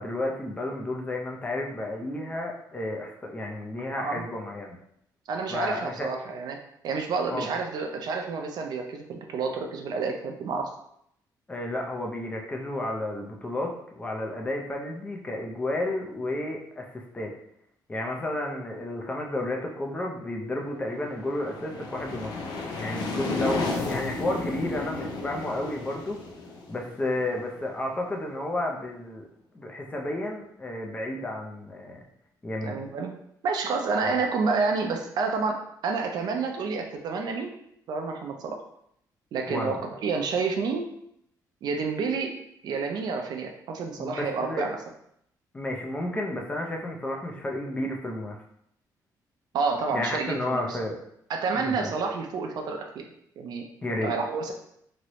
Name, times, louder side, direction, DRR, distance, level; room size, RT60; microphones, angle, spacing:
voice 1, 0.0-4.8 5.5-6.1 7.3-7.5 11.5-17.3 17.9-22.3 22.8-26.2 26.7-29.3 29.5-32.0 32.4-32.8 34.0-34.1 39.5-39.8 44.0-44.6 45.5-48.4 49.9-51.0 51.5-51.9 53.8-54.1, left 1 dB, 20° left, 1 dB, 0.5 m, -32 dB
voice 2, 5.3-6.6 6.8-10.7 32.6-33.1 33.4-37.6 37.9-38.6 39.3-40.9 41.6-42.3 42.6-44.8 49.5-50.8 51.3-53.0 53.4-53.6 54.0-54.5, right 4 dB, 65° right, 3 dB, 0.5 m, -29 dB
sound 1, 21.0-27.8, left 3 dB, 75° left, 0.5 m, -33 dB
3.1 x 2.6 x 2.9 m, 0.72 s
cardioid pair, 150°, 7 cm